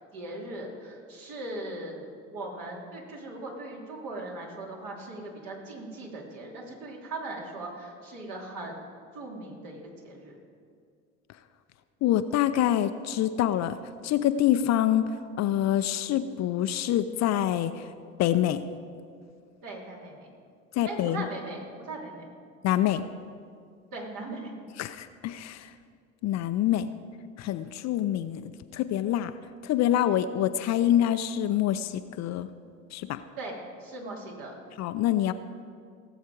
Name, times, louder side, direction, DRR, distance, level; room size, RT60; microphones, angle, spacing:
voice 1, 0.1-8.8 9.1-10.4 19.6-20.3 20.8-22.3 23.9-24.5 33.4-34.5, right 2 dB, 55° right, -1 dB, 2.9 m, -39 dB
voice 2, 12.0-13.8 14.0-15.1 15.4-17.9 18.2-18.6 20.7-21.3 22.6-23.0 24.8-25.7 26.2-26.9 27.4-28.4 28.7-29.3 29.6-32.5 32.9-33.2 34.8-35.3, left 12 dB, 45° left, 11 dB, 0.6 m, -26 dB
18.0 x 7.3 x 4.7 m, 2.2 s
hypercardioid pair, 65°, 39 cm